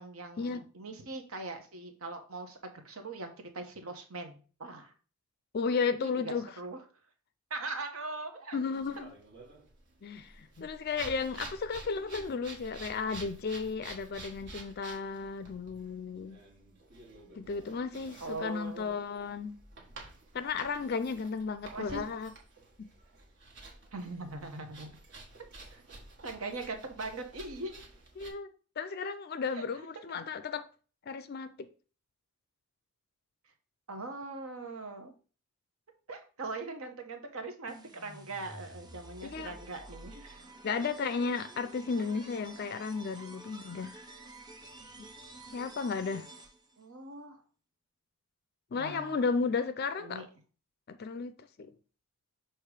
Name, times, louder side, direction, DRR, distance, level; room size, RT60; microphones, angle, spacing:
voice 1, 0.0-2.6 2.8-4.9 6.2-6.8 7.5-8.6 18.2-19.0 21.7-22.0 23.9-24.9 25.7-25.8 26.2-27.7 30.1-30.2 33.9-35.1 36.1-41.0 42.0-42.1 46.8-47.4 48.7-49.2 50.0-50.3, right 3 dB, 75° right, 1.1 m, -41 dB
voice 2, 5.5-6.5 8.5-9.1 10.0-16.4 17.3-19.6 20.3-22.3 22.8-22.9 28.2-28.5 28.8-30.7 31.1-31.7 39.2-39.6 40.6-44.0 45.0-45.1 45.5-46.3 48.7-50.3 50.9-51.3 51.6-51.7, left 5 dB, 45° left, 0.4 m, -34 dB
sound 1, 8.7-28.3, right 2 dB, 55° right, 1.4 m, -50 dB
sound 2, 37.7-46.8, right 2 dB, 20° right, 0.7 m, -50 dB
6.6 x 3.1 x 4.8 m
head